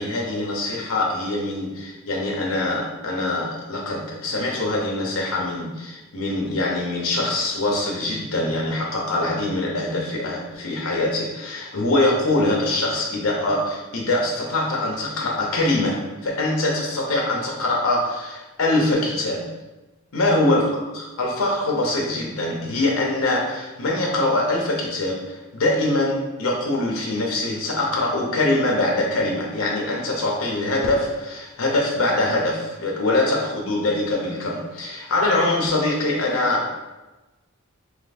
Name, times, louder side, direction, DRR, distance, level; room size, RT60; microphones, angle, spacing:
voice 1, 0.0-19.4 20.1-36.7, left 2 dB, 70° left, -2 dB, 0.8 m, -23 dB
3.3 x 2.8 x 4.1 m, 1.1 s
head